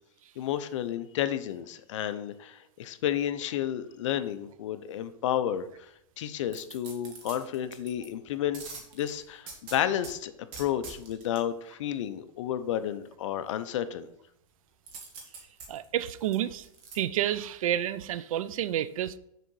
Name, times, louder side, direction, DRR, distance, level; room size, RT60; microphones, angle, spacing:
voice 1, 0.4-5.9 6.2-8.6 8.9-10.3 10.6-14.1, left 10 dB, 55° left, 0.6 m, -31 dB
sound 1, 6.5-8.1 8.5-10.1 10.5-11.4 14.9-17.0 17.4-17.5, right 4 dB, 40° right, 1.8 m, -45 dB
voice 2, 15.7-16.6 16.9-19.2, right 11 dB, 70° right, 0.5 m, -30 dB
6.7 x 3.8 x 6.2 m
supercardioid pair, 165°, 18 cm